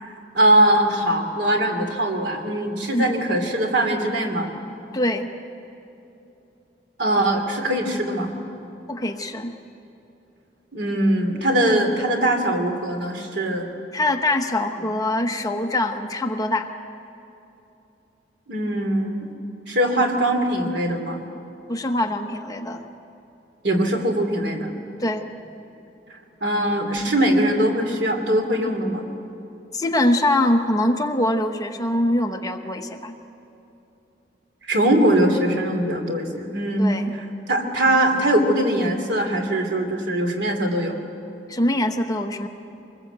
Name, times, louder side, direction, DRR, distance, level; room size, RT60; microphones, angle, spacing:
voice 1, 0.0-4.5 7.0-8.3 10.7-13.7 14.8-14.9 18.5-19.3 19.7-21.2 23.6-24.7 26.4-29.0 34.7-36.9 37.5-41.0, right 1 dB, 80° right, 4 dB, 3.0 m, -21 dB
voice 2, 4.9-5.3 8.9-9.6 13.9-16.7 21.7-22.9 25.0-25.3 29.7-33.1 36.8-37.1 41.5-42.5, left 1 dB, 20° left, 4 dB, 1.1 m, -23 dB
24.0 x 20.5 x 8.1 m, 2.9 s
head